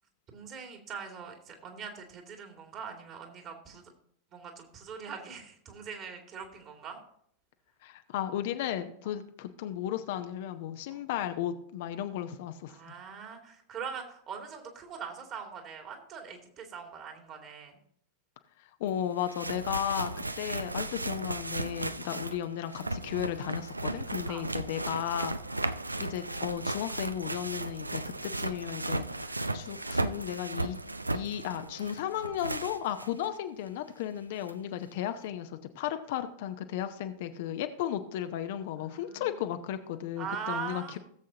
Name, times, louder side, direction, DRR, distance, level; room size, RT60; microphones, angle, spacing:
voice 1, 0.3-3.9 4.3-7.0 10.9-11.0 12.7-17.8 22.0-22.2 24.3-24.4 38.7-39.4 40.2-41.0, right 6 dB, 35° right, 3 dB, 2.4 m, -42 dB
voice 2, 7.8-12.7 18.8-25.4 26.0-30.8 31.1-41.0, left 11 dB, 50° left, 8 dB, 0.8 m, -35 dB
sound 1, 18.9-19.0 19.2-33.3 33.7-33.8 34.5-34.6, right 2 dB, 85° right, 0.5 m, -35 dB
17.5 x 7.7 x 2.8 m, 0.67 s
figure-of-eight pair, 90°, 0 cm